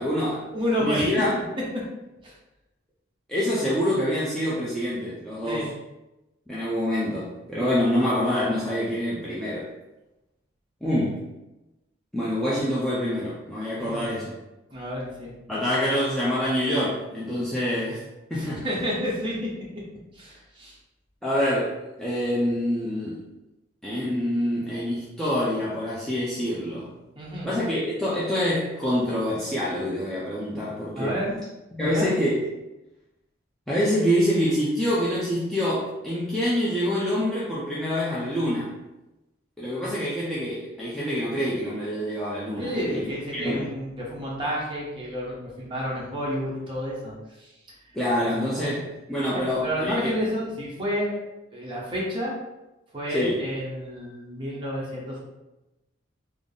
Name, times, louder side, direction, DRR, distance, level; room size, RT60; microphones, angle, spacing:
voice 1, 0.0-0.5 0.8-1.4 3.3-5.7 6.5-9.7 10.8-11.2 12.1-14.3 15.5-18.0 18.3-18.6 21.2-23.2 23.8-26.9 27.4-31.1 31.8-32.5 33.7-38.8 39.6-42.8 43.3-43.7 47.9-50.2 53.1-53.4, equal, ahead, -9 dB, 0.5 m, -26 dB
voice 2, 0.5-1.1 2.2-2.3 5.5-5.7 7.6-7.8 13.8-14.1 14.7-15.3 18.3-19.4 20.1-20.7 27.1-27.5 30.9-31.4 31.8-32.1 39.8-39.9 42.6-47.1 47.4-47.5 48.2-48.8 49.3-51.1 51.5-52.3 52.9-55.2, equal, 25° right, -6 dB, 1.0 m, -30 dB
3.7 x 2.0 x 3.7 m, 0.98 s
head